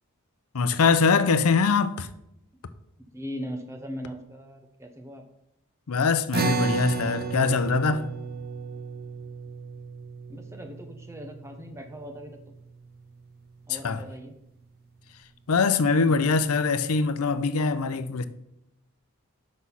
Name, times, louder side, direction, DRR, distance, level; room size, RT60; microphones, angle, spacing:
voice 1, 0.5-2.1 5.9-8.1 13.7-14.0 15.5-18.2, left 4 dB, 75° left, 0.6 m, -23 dB
voice 2, 3.0-5.2 10.3-12.4 13.7-14.3, equal, 10° right, 0.8 m, -39 dB
sound 1, 6.3-13.0, right 4 dB, 45° right, 0.7 m, -33 dB
6.2 x 6.1 x 5.5 m
head